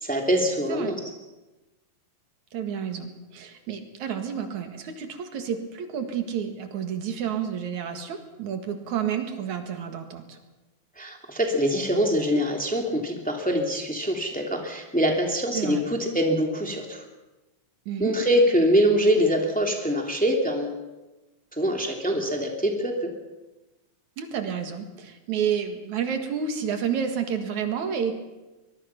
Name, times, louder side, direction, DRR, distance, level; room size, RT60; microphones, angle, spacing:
voice 1, 0.0-1.0 11.0-17.1 18.0-20.8 21.5-23.1, equal, 5° left, 1 dB, 2.4 m, -24 dB
voice 2, 2.5-10.4 15.5-15.9 17.9-18.2 24.2-28.2, right 7 dB, 80° right, 6 dB, 3.2 m, -30 dB
24.0 x 21.0 x 5.9 m, 1.1 s
omnidirectional pair, 3.3 m